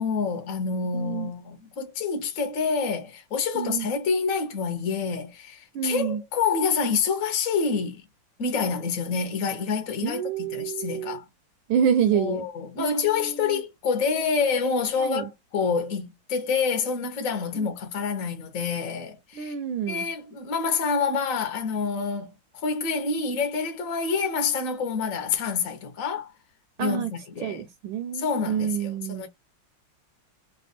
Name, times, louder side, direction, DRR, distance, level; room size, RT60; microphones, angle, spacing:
voice 1, 0.0-8.0 8.4-11.2 12.1-19.6 19.9-26.3 26.8-27.6 28.1-29.3, left 5 dB, 50° left, 1.0 m, -27 dB
voice 2, 0.9-1.3 3.5-3.9 5.7-6.2 10.0-11.2 11.7-12.4 12.8-13.6 15.0-15.3 17.6-17.7 19.4-20.1 26.8-27.1 27.4-29.3, right 8 dB, 75° right, 1.4 m, -28 dB
3.4 x 2.4 x 3.9 m
omnidirectional pair, 2.3 m